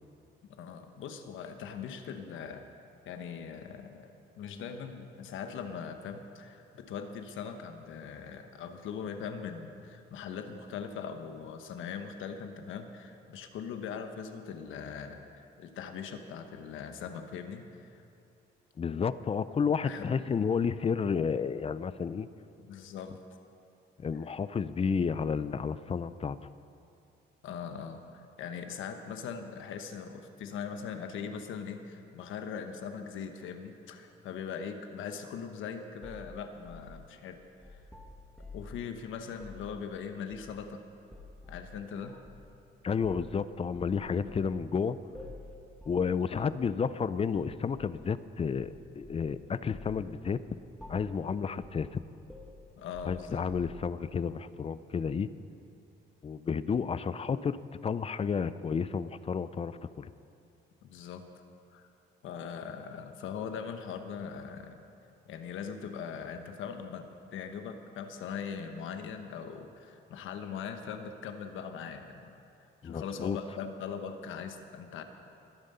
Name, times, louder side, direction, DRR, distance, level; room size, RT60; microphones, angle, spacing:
voice 1, 0.4-2.7 3.0-18.0 19.8-20.1 22.6-23.2 27.4-37.4 37.7-37.8 38.5-40.8 41.5-42.2 44.1-44.3 46.3-46.4 52.8-53.4 60.8-61.3 61.7-61.8 62.2-64.8 65.2-72.3 72.6-75.0, left 6 dB, 80° left, 7 dB, 1.2 m, -41 dB
voice 2, 18.8-22.3 24.0-26.5 42.8-45.0 45.9-50.4 50.9-52.0 53.0-55.3 56.2-57.6 57.8-60.1 72.8-73.4, left 6 dB, 30° left, 15 dB, 0.5 m, -31 dB
sound 1, 36.0-38.8 39.3-39.7 40.3-40.7 41.1-41.7 42.2-42.4 43.0-43.3 43.7-44.5 45.1-45.5 45.8-46.0 46.3-46.6 47.3-48.0 48.6-49.3 49.7-50.0 50.3-50.5 50.8-51.2 51.6-51.9 52.3-54.0, left 2 dB, ahead, 2.3 m, -49 dB
21.5 x 7.5 x 5.6 m, 2.6 s
cardioid pair, 90°, 20 cm